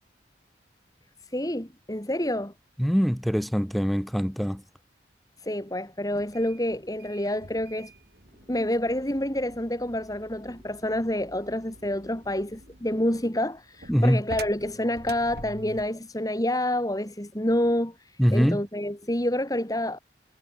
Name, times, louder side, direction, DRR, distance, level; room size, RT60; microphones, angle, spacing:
voice 1, 1.2-2.5 5.4-7.9 8.5-20.0, left 1 dB, 20° left, 3.2 m, -28 dB
voice 2, 2.8-4.6 13.9-14.2 18.2-18.6, equal, ahead, 1.1 m, -23 dB
sound 1, 6.1-16.0, right 2 dB, 60° right, 7.0 m, -47 dB
head